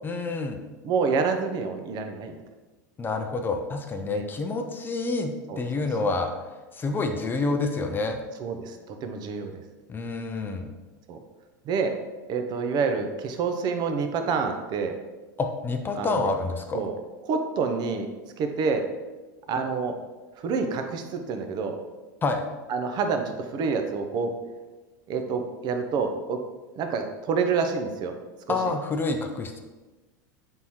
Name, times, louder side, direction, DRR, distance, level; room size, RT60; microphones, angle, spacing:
voice 1, 0.0-0.6 3.0-6.3 6.7-8.2 9.9-10.7 15.4-16.8 22.2-22.4 28.5-29.6, left 3 dB, 20° left, 5 dB, 0.4 m, -28 dB
voice 2, 0.8-2.4 4.0-4.2 5.5-5.9 8.4-9.6 11.1-11.2 11.7-11.9 12.3-14.9 16.0-16.3 16.7-16.9 17.2-18.1 18.4-18.8 19.5-19.9 20.4-21.8 22.7-23.2 23.5-24.3 25.1-26.4 26.8-28.1 28.5-28.6, right 5 dB, 45° right, 6 dB, 0.5 m, -27 dB
4.0 x 3.6 x 2.9 m, 1.2 s
hypercardioid pair, 105°, 10 cm